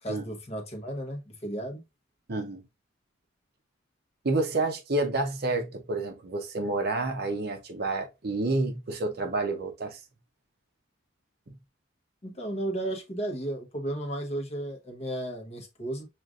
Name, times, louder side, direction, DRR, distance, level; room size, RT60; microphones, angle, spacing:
voice 1, 0.0-1.8 12.2-16.1, right 1 dB, 30° left, 0.9 m, -34 dB
voice 2, 2.3-2.6 4.2-10.0, right 2 dB, 50° right, 0.6 m, -29 dB
6.1 x 2.4 x 2.4 m
head